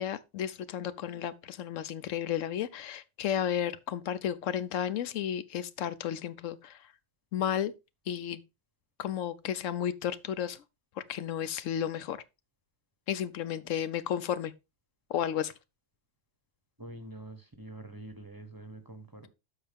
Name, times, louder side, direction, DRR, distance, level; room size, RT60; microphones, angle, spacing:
voice 1, 0.0-6.8 7.3-7.7 8.1-8.4 9.0-10.6 11.1-12.2 13.1-14.5 15.1-15.5, left 10 dB, 80° left, 1.0 m, -33 dB
voice 2, 16.8-19.3, right 1 dB, 20° right, 1.0 m, -45 dB
12.5 x 4.5 x 3.5 m
omnidirectional pair, 1.3 m